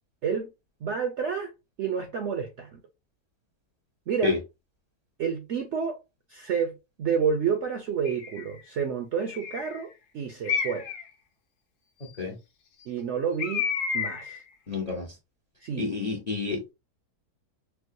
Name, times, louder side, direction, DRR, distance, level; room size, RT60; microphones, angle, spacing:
voice 1, 0.8-1.5 1.8-2.8 4.1-4.4 5.2-6.0 6.3-10.9 12.9-13.7 13.9-14.4 15.6-15.9, right 6 dB, 70° right, 0.7 m, -29 dB
Bird, 8.1-8.5 9.3-9.8 10.5-11.1 13.4-14.4, left 6 dB, 70° left, 1.2 m, -30 dB
voice 2, 14.7-15.1 15.8-16.7, left 4 dB, 45° left, 0.5 m, -29 dB
4.6 x 2.1 x 2.6 m
omnidirectional pair, 1.8 m